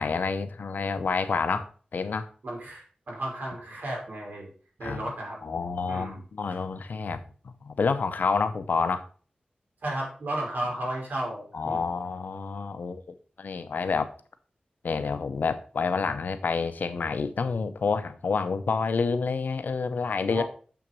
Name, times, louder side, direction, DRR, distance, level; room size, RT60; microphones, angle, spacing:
voice 1, 0.0-2.3 4.8-5.1 5.4-9.0 11.5-13.0 13.4-14.1 14.8-20.4, left 4 dB, 90° left, 11 dB, 0.8 m, -28 dB
voice 2, 2.4-4.5 4.8-5.4 5.9-6.2 9.8-11.9 20.3-20.4, right 1 dB, 80° right, -2 dB, 4.0 m, -33 dB
7.1 x 6.0 x 5.3 m, 0.41 s
wide cardioid pair, 105°, 3 cm